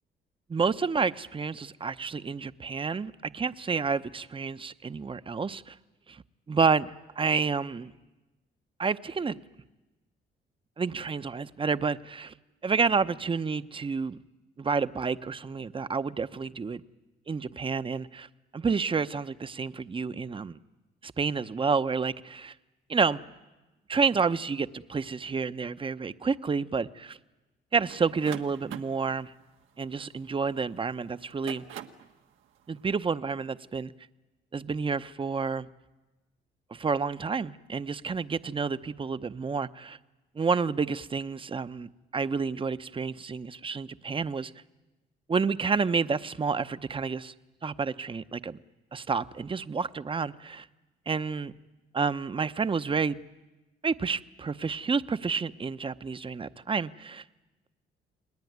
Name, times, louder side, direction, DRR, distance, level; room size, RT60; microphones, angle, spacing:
voice 1, 0.5-5.7 6.1-7.9 8.8-9.4 10.8-12.3 12.6-14.2 14.6-16.8 17.3-18.3 18.5-20.6 21.0-22.5 22.9-23.2 23.9-27.2 27.7-29.3 29.8-31.6 32.7-33.9 34.5-35.7 36.7-40.0 40.3-44.5 45.3-47.3 47.6-48.6 48.9-50.7 51.1-51.5 51.9-53.2 53.8-57.2, right 5 dB, 25° right, 13 dB, 0.8 m, -29 dB
sound 1, 27.9-30.6 31.2-32.1, right 10 dB, 90° right, 1.4 m, -43 dB
30.0 x 20.5 x 9.4 m, 1.1 s
cardioid pair, 90°, 20 cm